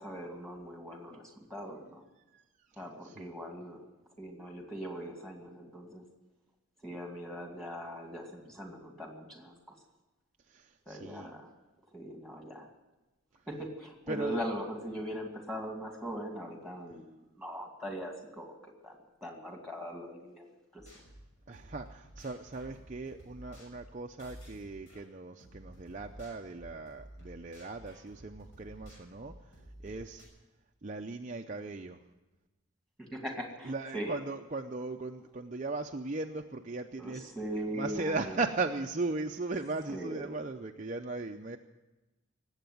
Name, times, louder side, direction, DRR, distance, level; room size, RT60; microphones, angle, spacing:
voice 1, 0.0-2.0 2.8-3.8 4.2-6.0 6.8-9.7 10.9-11.5 11.9-12.7 13.5-20.5 20.7-20.8 33.0-34.2 37.0-38.5 39.9-40.3, equal, ahead, 2 dB, 2.3 m, -40 dB
voice 2, 2.7-3.3 10.5-11.3 14.1-14.4 21.5-30.2 30.8-32.0 33.6-37.3 37.7-41.6, right 3 dB, 35° right, 3 dB, 0.6 m, -38 dB
sound 1, 20.8-25.0 25.4-30.3, right 1 dB, 60° left, 6.1 m, -52 dB
19.0 x 8.1 x 9.3 m, 1.1 s
head